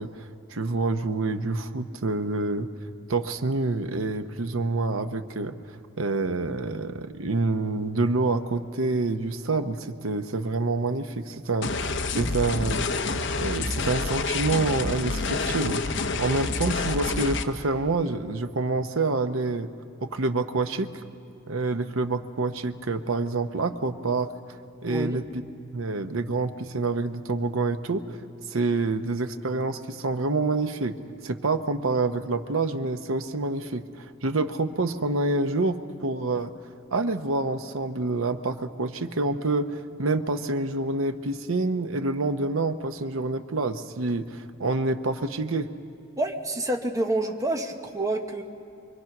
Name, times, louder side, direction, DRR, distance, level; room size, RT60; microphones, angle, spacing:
voice 1, 0.0-2.7 3.1-12.9 13.4-19.7 20.0-20.9 21.5-24.3 24.8-25.4 25.7-28.2 28.5-31.0 31.2-36.5 36.9-45.7, right 3 dB, 90° right, 8 dB, 0.9 m, -27 dB
sound 1, 11.6-17.4, left 3 dB, 60° left, 0.9 m, -28 dB
voice 2, 24.9-25.2 46.2-48.4, right 1 dB, 15° right, 4 dB, 1.0 m, -28 dB
25.0 x 23.5 x 6.0 m, 2.5 s
head